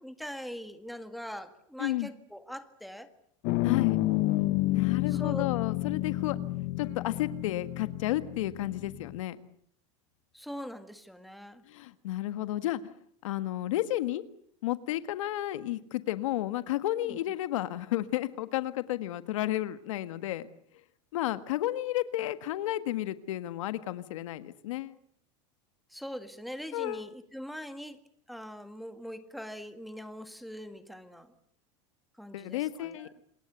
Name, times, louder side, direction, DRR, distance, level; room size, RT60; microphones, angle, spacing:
voice 1, 0.0-3.1 5.1-5.5 10.3-11.6 17.0-17.2 25.9-28.0 28.3-31.3 32.2-33.1, equal, ahead, 9 dB, 1.8 m, -42 dB
sound 1, 3.4-9.2, left 18 dB, 55° left, 1.1 m, -30 dB
voice 2, 3.6-4.0 4.7-6.4 6.8-9.4 11.7-12.9 13.2-14.2 14.6-20.5 21.1-25.0 26.7-27.1 32.3-33.1, left 14 dB, 85° left, 12 dB, 1.6 m, -32 dB
27.5 x 21.0 x 8.2 m, 0.64 s
supercardioid pair, 145°, 16 cm